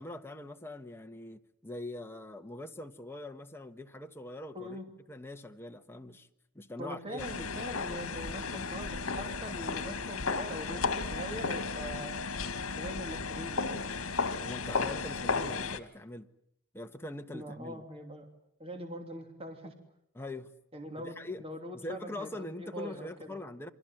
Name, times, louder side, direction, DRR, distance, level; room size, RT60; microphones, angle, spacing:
voice 1, 0.0-4.8 5.1-6.3 6.5-7.5 14.4-16.3 16.7-17.8 20.1-20.5 21.0-21.4 21.7-23.7, left 1 dB, 10° left, 1.3 m, -43 dB
voice 2, 6.8-12.1 12.8-13.8 17.3-18.3 18.6-19.7 20.7-23.4, equal, 30° right, 3.0 m, -42 dB
sound 1, 7.2-15.8, left 4 dB, 75° left, 1.8 m, -34 dB
28.5 x 24.0 x 7.8 m
head